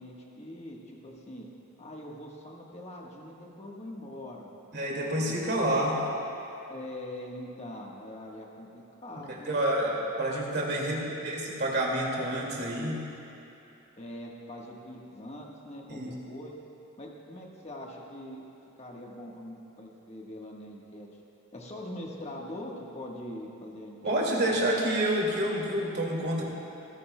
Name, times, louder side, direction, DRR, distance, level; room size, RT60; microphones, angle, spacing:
voice 1, 0.0-1.5 1.8-4.5 5.1-5.8 6.7-9.6 14.0-16.5 17.0-18.4 18.8-21.1 21.5-24.7, left 1 dB, 30° left, -1 dB, 1.3 m, -43 dB
voice 2, 4.7-6.0 9.3-13.0 15.9-16.1 24.0-26.4, right 1 dB, 50° right, -3 dB, 2.2 m, -28 dB
27.5 x 9.7 x 2.2 m, 2.9 s
head